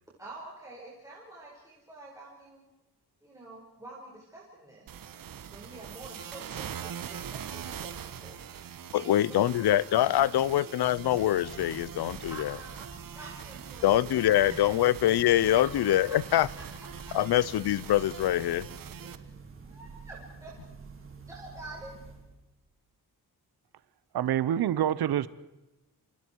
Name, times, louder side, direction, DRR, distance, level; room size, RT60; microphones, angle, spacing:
voice 1, 0.2-2.6 3.2-4.9 5.5-7.9 8.2-8.4 8.9-9.6 9.9-10.4 12.3-12.9 13.1-14.7 15.4-17.4 19.1-19.3 19.6-20.5 21.3-21.9, right 2 dB, 10° right, 5.1 m, -48 dB
sound 1, 4.9-19.2, right 8 dB, 60° right, 1.3 m, -43 dB
voice 2, 8.9-12.5 13.8-16.5 17.1-18.7, left 13 dB, 85° left, 0.8 m, -24 dB
sound 2, 10.7-22.5, right 4 dB, 35° right, 3.5 m, -48 dB
voice 3, 24.1-25.3, right 11 dB, 75° right, 0.9 m, -26 dB
29.0 x 28.0 x 4.7 m
wide cardioid pair, 165°, 38 cm